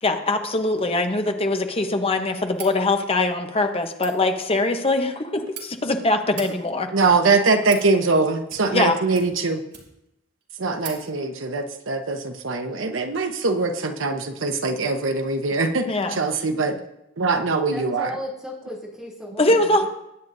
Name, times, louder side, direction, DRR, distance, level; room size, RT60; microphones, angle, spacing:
voice 1, 0.0-6.9 8.7-9.0 15.9-16.2 19.4-19.9, left 2 dB, 30° left, 5 dB, 0.9 m, -22 dB
sound 1, 2.5-2.8 3.8-4.1 5.1-5.6 6.2-6.5 7.3-7.9 8.4-8.8 9.1-10.1 10.4-10.5 10.8-11.0, right 7 dB, 60° right, 2.7 m, -39 dB
voice 2, 6.9-9.6 10.6-16.8 17.2-18.1, right 3 dB, 85° right, 6 dB, 1.0 m, -22 dB
voice 3, 17.7-19.9, left 1 dB, ahead, -5 dB, 3.0 m, -35 dB
20.5 x 9.0 x 2.7 m, 0.87 s
head